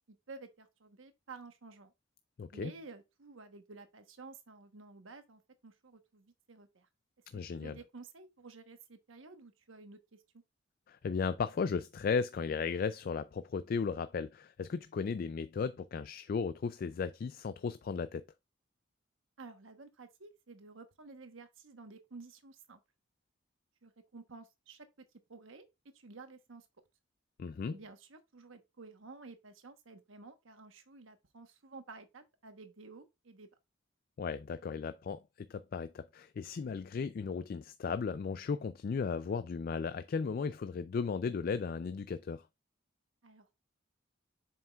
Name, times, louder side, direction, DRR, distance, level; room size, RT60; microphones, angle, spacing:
voice 1, 0.1-1.9 2.5-6.9 7.5-10.4 19.4-22.8 23.8-24.9 25.3-25.7 25.9-26.7 27.7-33.5 43.2-43.5, right 3 dB, 85° right, 1.0 m, -52 dB
voice 2, 2.4-2.7 7.3-7.8 10.9-18.2 27.4-27.7 34.2-35.2 35.5-42.4, left 5 dB, 45° left, 0.3 m, -35 dB
7.3 x 5.7 x 2.3 m
head